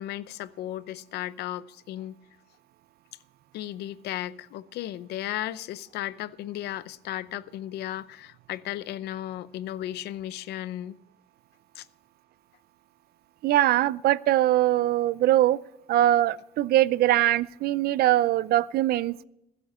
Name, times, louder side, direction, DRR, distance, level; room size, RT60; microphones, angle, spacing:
voice 1, 0.0-2.2 3.5-11.0 11.7-11.9, left 13 dB, 75° left, 0.7 m, -35 dB
voice 2, 13.4-15.6 15.9-19.2, right 14 dB, 65° right, 0.5 m, -22 dB
20.5 x 8.1 x 4.3 m
cardioid pair, 110°, 17 cm